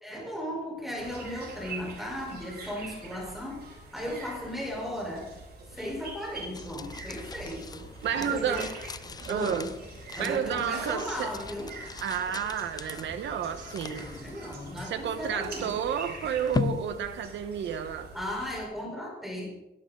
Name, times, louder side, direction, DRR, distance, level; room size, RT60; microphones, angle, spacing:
voice 1, 0.0-3.6 3.9-5.4 5.7-8.7 9.3-9.7 10.2-11.8 13.9-15.8 18.1-19.5, left 1 dB, ahead, 5.0 m, -36 dB
sound 1, 1.0-18.6, right 3 dB, 60° right, 6.9 m, -45 dB
sound 2, 6.5-17.9, left 5 dB, 20° left, 0.4 m, -39 dB
voice 2, 8.0-8.7 9.3-9.7 10.2-11.3 12.0-14.1 14.8-18.1, right 8 dB, 80° right, 1.6 m, -31 dB
22.5 x 12.5 x 4.1 m
wide cardioid pair, 160°, 19 cm